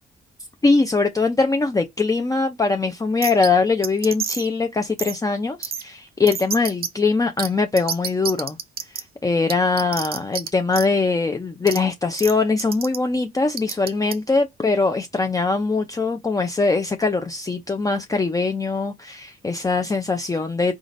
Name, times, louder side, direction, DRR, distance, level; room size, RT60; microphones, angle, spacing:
voice 1, 0.6-8.6 9.2-20.7, left 3 dB, 15° left, 0.5 m, -22 dB
sound 1, 3.2-3.5 3.8-4.5 5.0-5.2 5.6-5.8 6.3-6.9 7.4-7.5 7.8-9.0 9.5-10.5 10.7-10.9 11.7-11.8 12.2-12.3 12.6-13.0 13.6-14.1, right 8 dB, 50° right, 0.7 m, -28 dB
4.0 x 3.7 x 2.5 m
cardioid pair, 90°, 20 cm